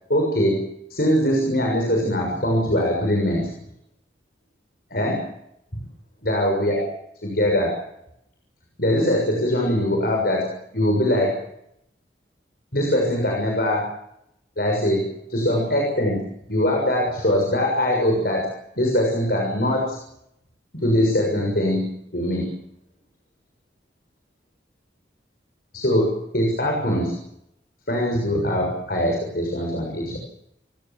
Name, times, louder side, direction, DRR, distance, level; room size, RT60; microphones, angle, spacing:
voice 1, 0.1-0.6 0.9-3.5 4.9-5.2 5.7-5.8 6.2-6.9 7.2-7.8 8.8-11.4 12.7-13.9 14.6-20.0 20.7-22.5 25.7-27.1 27.9-30.2, left 1 dB, 60° left, 0 dB, 6.7 m, -22 dB
30.0 x 16.5 x 7.6 m, 0.79 s
head